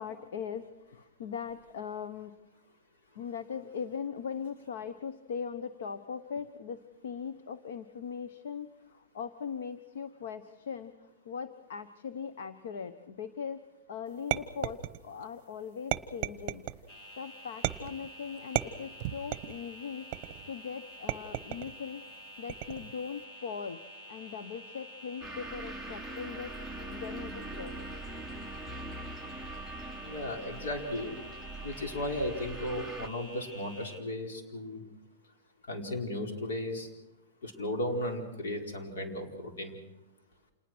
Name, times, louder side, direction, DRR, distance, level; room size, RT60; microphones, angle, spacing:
voice 1, 0.0-2.3 3.1-10.9 11.2-16.6 17.2-20.1 20.5-22.1 22.4-23.8 24.1-26.5 26.9-27.8, left 7 dB, 65° left, 11 dB, 1.1 m, -40 dB
sound 1, 14.3-15.2 15.9-16.8 17.6-18.1 18.6-19.6 20.1-20.5 21.1-21.7 22.5-23.0, right 14 dB, 30° right, 0.9 m, -34 dB
sound 2, 16.9-34.0, equal, 30° left, 2.4 m, -49 dB
sound 3, 25.2-33.1, right 2 dB, 5° left, 0.7 m, -42 dB
voice 2, 30.0-31.2 31.6-34.8 35.7-36.9 37.4-39.7, left 1 dB, 85° left, 4 dB, 4.9 m, -35 dB
27.5 x 20.0 x 6.3 m, 0.94 s
supercardioid pair, 175°, 0 cm